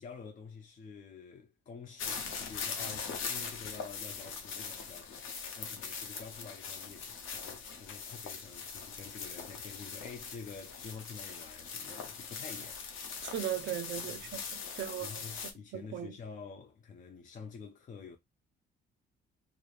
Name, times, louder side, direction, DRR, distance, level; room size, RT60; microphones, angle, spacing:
voice 1, 0.0-12.8 14.0-14.3 14.7-18.2, left 5 dB, 40° left, 0.5 m, -49 dB
sound 1, 2.0-15.5, left 5 dB, 90° left, 0.8 m, -41 dB
voice 2, 13.3-15.2 15.7-16.1, right 11 dB, 65° right, 0.5 m, -38 dB
3.2 x 2.0 x 2.4 m
cardioid pair, 90°, 20 cm